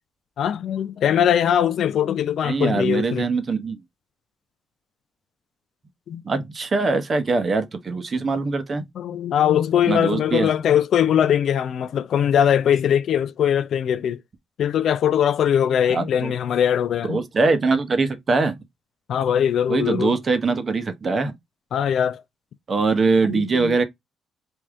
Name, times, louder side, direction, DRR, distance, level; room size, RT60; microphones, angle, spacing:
voice 1, 0.4-3.3 6.1-6.2 9.0-14.2 14.6-17.2 19.1-20.2 21.7-22.2 23.2-23.8, left 9 dB, 65° left, 0.3 m, -21 dB
voice 2, 2.4-3.8 6.2-8.9 9.9-10.5 15.9-16.3 17.1-18.6 19.7-21.4 22.7-23.8, right 4 dB, 40° right, 0.8 m, -22 dB
3.4 x 2.6 x 3.5 m
cardioid pair, 90°, 0 cm